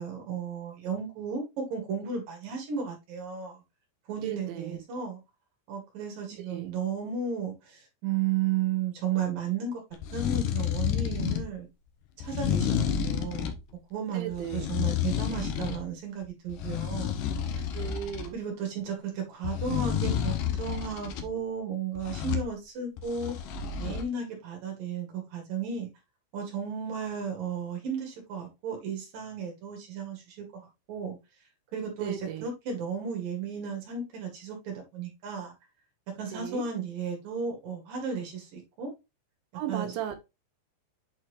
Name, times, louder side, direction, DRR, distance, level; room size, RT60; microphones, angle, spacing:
voice 1, 0.0-3.6 4.1-5.2 5.7-9.8 10.1-11.7 12.2-13.6 13.9-17.2 17.5-17.6 18.3-23.3 23.8-25.9 26.3-31.2 31.7-32.2 32.4-35.5 36.2-38.9 39.7-39.9, right 6 dB, 55° right, 3.3 m, -34 dB
voice 2, 4.2-4.8 6.3-6.7 14.1-14.7 17.7-18.4 32.0-32.5 36.3-36.6 39.5-40.2, right 11 dB, 80° right, 3.2 m, -36 dB
sound 1, 9.9-11.5 12.2-13.6 14.3-15.9 16.2-18.3 19.4-21.3 22.0-22.5 23.0-24.0, left 9 dB, 90° left, 1.9 m, -30 dB
8.3 x 4.5 x 3.1 m
omnidirectional pair, 5.4 m